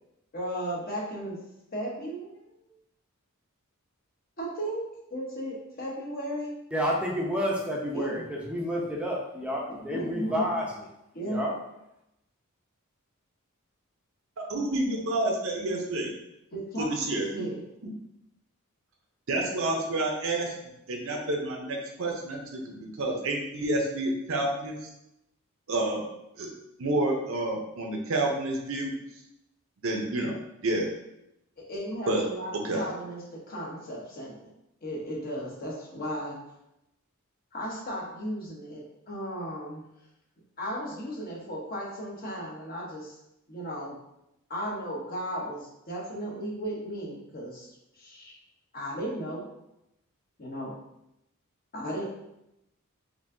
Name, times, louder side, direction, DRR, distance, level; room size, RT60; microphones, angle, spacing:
voice 1, 0.3-1.4 1.7-2.4 4.4-4.8 5.1-6.5 7.9-8.3 9.8-10.5 11.1-11.5 16.5-17.6 31.6-34.4 34.8-36.4 37.5-39.8 40.6-43.2 43.5-44.0 44.5-48.3 48.7-49.4 50.4-50.7 51.7-52.0, equal, 45° left, -4 dB, 1.0 m, -35 dB
voice 2, 6.7-10.7 11.2-11.5, equal, 5° right, -3 dB, 0.6 m, -30 dB
voice 3, 14.5-16.1 16.8-17.5 19.3-20.5 20.9-24.8 25.7-26.0 26.4-26.5 26.8-28.9 29.8-30.3 30.6-30.9 32.1-32.2 32.5-32.8, right 2 dB, 65° right, 1 dB, 0.7 m, -29 dB
4.5 x 2.6 x 2.6 m, 0.86 s
head